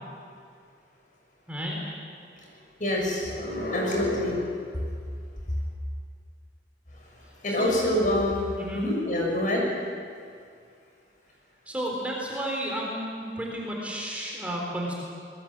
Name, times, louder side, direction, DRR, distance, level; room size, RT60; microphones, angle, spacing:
voice 1, 2.8-4.5 7.4-8.5 8.7-9.7, left 1 dB, 45° left, -1 dB, 6.7 m, -26 dB
voice 2, 7.5-7.9 8.6-8.8 11.7-14.9, equal, 10° right, -2 dB, 4.1 m, -32 dB
26.5 x 20.5 x 7.6 m, 2.2 s
head